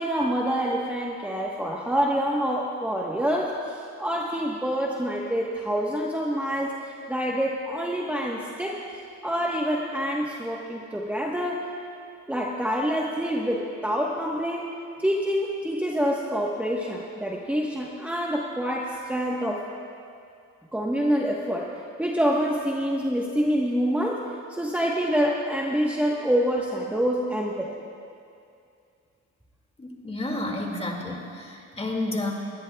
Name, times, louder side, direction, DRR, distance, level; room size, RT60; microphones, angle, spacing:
voice 1, 0.0-8.8 9.2-11.7 12.3-14.7 15.0-19.6 20.7-21.7 22.0-24.2 24.5-27.7, equal, 5° right, -3 dB, 1.2 m, -26 dB
voice 2, 29.8-32.3, left 2 dB, 20° left, 1 dB, 2.2 m, -31 dB
21.5 x 16.5 x 2.3 m, 2.4 s
cardioid pair, 90°, 30 cm